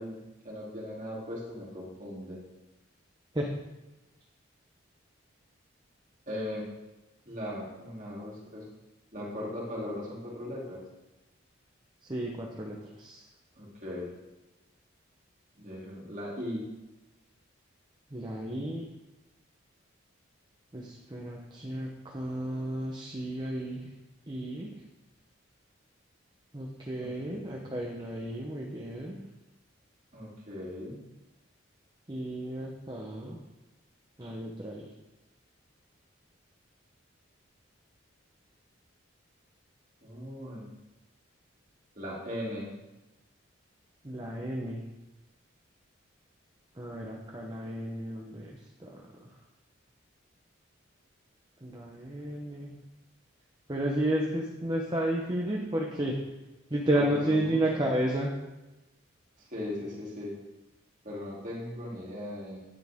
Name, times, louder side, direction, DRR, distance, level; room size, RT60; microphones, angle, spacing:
voice 1, 0.0-2.4 6.3-6.7 7.2-8.7 9.1-10.8 13.5-14.1 15.6-16.6 27.0-27.7 30.1-31.0 40.0-40.7 41.9-42.7 56.9-57.9 59.4-60.4 61.0-62.6, left 1 dB, 40° right, -5 dB, 3.0 m, -38 dB
voice 2, 12.1-13.2 18.1-18.8 20.7-23.8 24.3-24.7 26.5-29.2 32.1-33.4 34.2-34.9 44.0-44.8 46.8-48.5 48.8-48.9 51.6-52.8 53.7-56.2 56.7-58.3, right 1 dB, 20° right, -2 dB, 0.9 m, -32 dB
9.9 x 9.9 x 3.6 m, 1.0 s
head